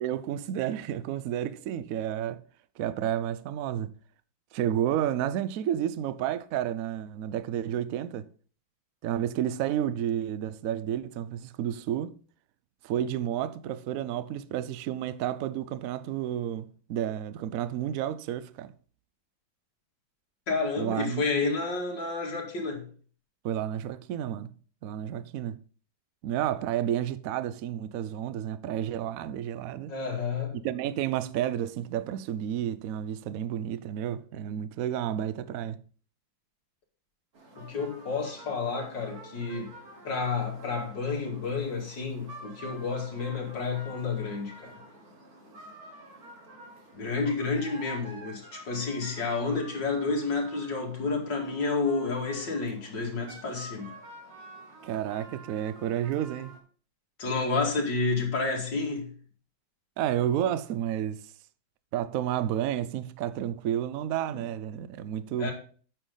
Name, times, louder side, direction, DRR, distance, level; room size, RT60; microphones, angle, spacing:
voice 1, 0.0-2.4 2.8-3.9 4.5-8.3 9.0-12.2 12.8-18.7 20.8-21.6 23.4-24.5 24.8-25.6 26.2-29.9 30.6-35.8 54.8-56.5 60.0-61.2 61.9-65.5, right 10 dB, 90° right, 0.7 m, -31 dB
voice 2, 20.5-22.9 29.9-30.6 37.5-39.8 40.0-44.7 46.9-54.0 57.2-59.1 65.4-65.5, left 4 dB, 65° left, 2.9 m, -30 dB
sound 1, 37.3-56.6, right 1 dB, 50° right, 2.4 m, -49 dB
8.9 x 6.8 x 3.8 m
omnidirectional pair, 2.1 m